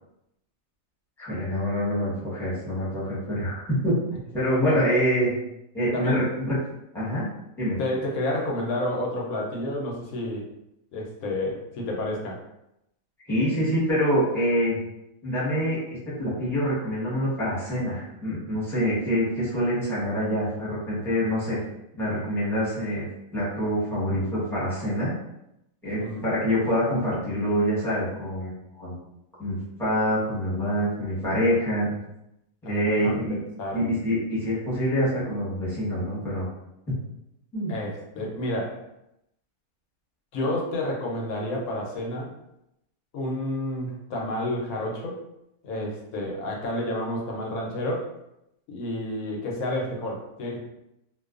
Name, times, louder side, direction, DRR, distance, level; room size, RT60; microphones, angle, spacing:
voice 1, 1.2-4.0 4.3-5.3 5.7-6.6 6.9-7.2 7.6-7.8 13.3-14.8 15.2-21.6 22.0-23.0 23.3-25.1 25.8-29.0 29.4-32.0 32.6-33.4 33.7-36.5 36.9-37.0 37.5-37.7, equal, ahead, -10 dB, 0.9 m, -26 dB
voice 2, 7.8-10.4 10.9-12.4 26.0-26.2 32.6-33.8 37.7-38.8 40.3-42.3 43.1-45.2 45.6-48.1 48.7-50.6, left 1 dB, 85° left, -1 dB, 1.1 m, -30 dB
2.6 x 2.2 x 2.4 m, 0.85 s
omnidirectional pair, 1.5 m